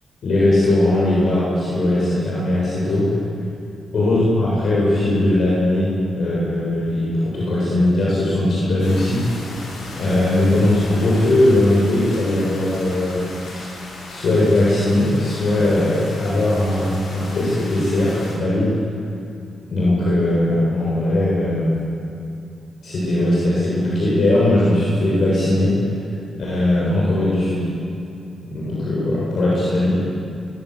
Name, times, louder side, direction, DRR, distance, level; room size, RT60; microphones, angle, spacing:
voice 1, 0.2-3.2 3.9-9.4 9.9-13.3 14.1-18.8 19.6-21.8 22.8-25.8 26.3-27.7 28.4-29.9, left 1 dB, 60° left, -6 dB, 7.5 m, -19 dB
sound 1, 8.8-18.4, left 2 dB, 85° left, 7.9 m, -36 dB
23.5 x 23.5 x 8.2 m, 2.6 s
cardioid pair, 110°, 0 cm